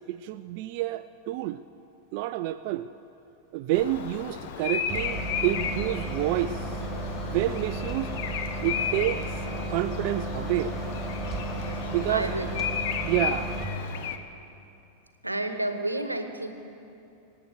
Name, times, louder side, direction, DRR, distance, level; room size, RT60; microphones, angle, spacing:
voice 1, 0.1-1.6 2.1-2.9 3.5-6.8 7.2-8.1 8.6-9.4 9.7-10.7 11.9-12.5 13.1-13.7, right 13 dB, 45° right, 10 dB, 0.4 m, -29 dB
Bird vocalization bird call bird song, 3.7-14.2, left 8 dB, 50° left, 1.0 m, -34 dB
sound 1, 4.9-13.6, right 2 dB, 10° right, 2.9 m, -34 dB
voice 2, 12.1-12.5 15.2-16.5, right 1 dB, 85° right, 8 dB, 1.1 m, -30 dB
25.0 x 8.7 x 6.7 m, 2.7 s
figure-of-eight pair, 90°, 0 cm